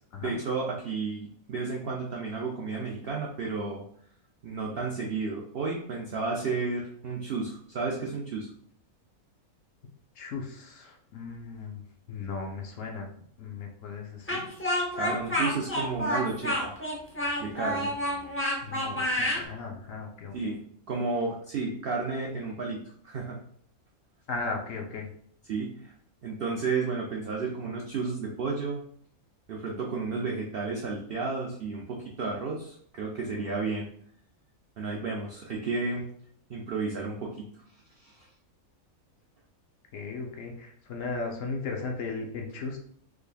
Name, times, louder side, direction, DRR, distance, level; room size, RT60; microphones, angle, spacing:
voice 1, 0.2-3.8 4.4-8.5 14.9-16.7 17.4-17.9 20.3-20.6 20.9-23.4 25.5-25.9 26.2-28.8 29.5-33.9 34.8-36.0 36.5-37.5 38.0-38.3, right 4 dB, 70° right, -1 dB, 0.5 m, -32 dB
voice 2, 10.2-11.8 12.1-13.1 13.4-14.5 18.6-20.6 24.3-25.1 39.9-42.8, left 4 dB, 65° left, 1 dB, 0.9 m, -36 dB
Speech, 14.3-19.4, left 1 dB, 20° left, 0.3 m, -29 dB
3.6 x 3.2 x 2.2 m, 0.62 s
omnidirectional pair, 1.6 m